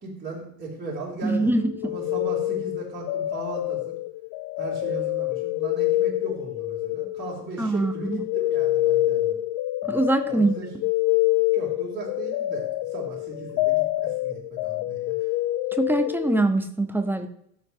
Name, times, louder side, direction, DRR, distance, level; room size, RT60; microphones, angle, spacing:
voice 1, 0.0-1.5 1.8-4.0 4.6-9.4 10.3-10.7 11.5-15.1, right 3 dB, 20° right, -5 dB, 3.9 m, -37 dB
voice 2, 1.2-1.9 7.6-8.2 9.8-10.6 15.7-17.3, right 2 dB, 5° right, 7 dB, 1.2 m, -23 dB
sound 1, 1.6-7.6 7.8-16.4, left 16 dB, 45° left, 0.7 m, -26 dB
17.0 x 7.4 x 3.1 m, 0.69 s
hypercardioid pair, 80°, 49 cm